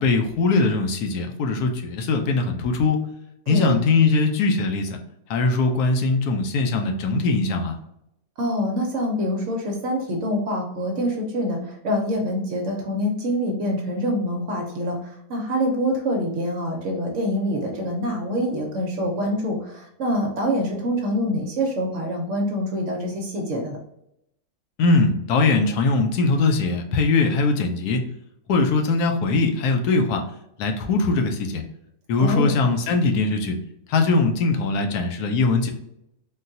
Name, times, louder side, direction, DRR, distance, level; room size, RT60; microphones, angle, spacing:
voice 1, 0.0-3.0 3.5-5.0 5.3-7.8 24.8-28.0 28.5-30.2 30.6-31.6 32.1-33.6 33.9-35.7, left 3 dB, 80° left, 5 dB, 1.1 m, -21 dB
voice 2, 3.5-3.8 8.4-23.8 32.2-32.5, equal, 60° right, 1 dB, 0.8 m, -25 dB
3.8 x 2.2 x 2.6 m, 0.80 s
omnidirectional pair, 1.6 m